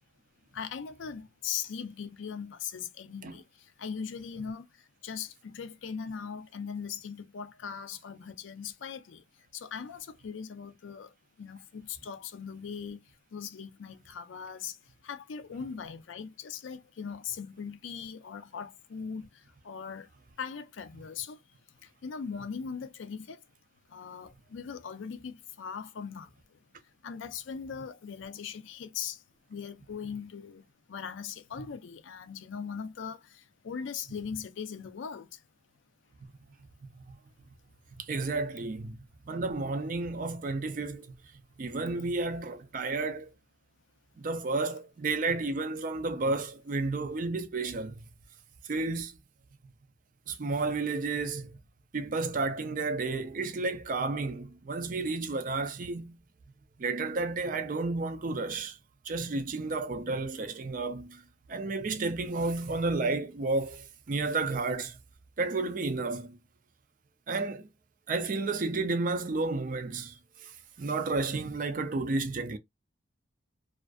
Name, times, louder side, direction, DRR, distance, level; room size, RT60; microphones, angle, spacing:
voice 1, 0.5-9.2 9.5-13.0 13.3-14.8 15.0-20.1 20.4-21.4 21.8-23.4 23.9-26.6 27.0-29.2 29.5-35.4, left 6 dB, 80° left, 0.4 m, -40 dB
voice 2, 38.0-39.0 39.3-41.1 41.6-43.3 44.2-48.0 48.7-49.2 50.3-51.6 51.9-56.2 56.8-58.8 59.1-61.2 61.5-65.0 65.4-66.4 67.3-67.7 68.1-70.5 70.8-72.6, right 3 dB, 45° right, 0.4 m, -31 dB
2.5 x 2.4 x 2.2 m
head